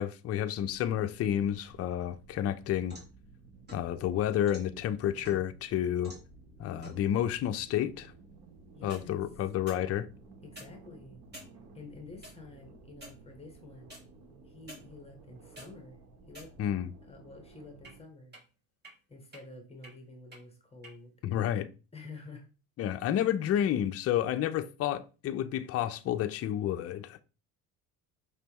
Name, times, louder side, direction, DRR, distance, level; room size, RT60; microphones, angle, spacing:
voice 1, 0.0-3.0 3.7-6.1 6.6-8.1 8.8-10.1 16.6-16.9 21.2-21.7 22.8-27.2, left 11 dB, 40° left, 0.5 m, -30 dB
sound 1, 0.5-18.0, right 3 dB, 85° right, 1.1 m, -55 dB
sound 2, 2.3-3.2 3.7-4.7 5.2-5.7 6.0-6.3 6.8-7.0 8.7-9.1 9.7-9.8 10.4-10.7 11.3-11.5 12.2-12.3 13.0-13.2 13.9-14.0 14.7-14.8 15.3-15.7 16.3-16.8 17.8-17.9 18.3-18.4 18.8-18.9 19.3-19.4 19.8-19.9 20.3-20.4 20.8-20.9, right 1 dB, 25° right, 2.0 m, -49 dB
voice 2, 8.7-9.2 10.4-11.2 11.7-14.0 14.4-16.6 17.0-18.4 19.1-21.1 21.9-22.5, left 3 dB, 15° left, 1.3 m, -49 dB
5.3 x 3.3 x 3.0 m
cardioid pair, 110°, 37 cm